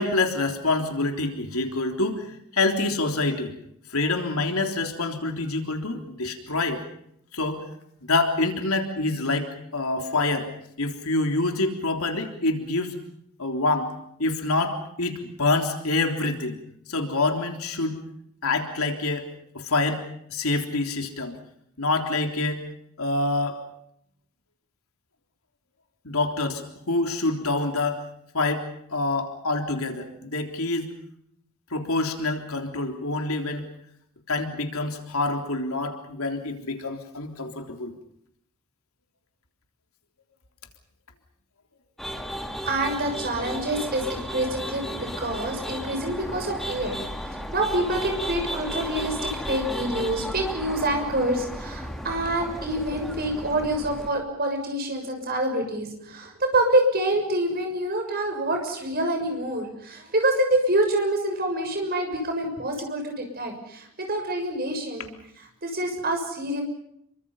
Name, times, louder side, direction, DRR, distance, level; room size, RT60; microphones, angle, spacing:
voice 1, 0.0-3.5 3.9-6.8 7.3-7.6 8.1-10.5 10.8-12.9 13.4-13.9 14.2-16.6 16.9-18.0 18.4-19.3 19.5-20.0 20.3-21.4 21.8-22.6 23.0-23.6 26.0-28.0 28.3-31.0 31.7-33.7 34.3-37.9, left 2 dB, 80° left, 4 dB, 3.6 m, -26 dB
sound 1, 42.0-54.1, equal, ahead, 2.6 m, -34 dB
voice 2, 42.6-47.0 47.3-65.1 65.6-66.6, right 1 dB, 45° right, 4 dB, 6.7 m, -26 dB
29.0 x 24.5 x 5.6 m, 0.72 s
head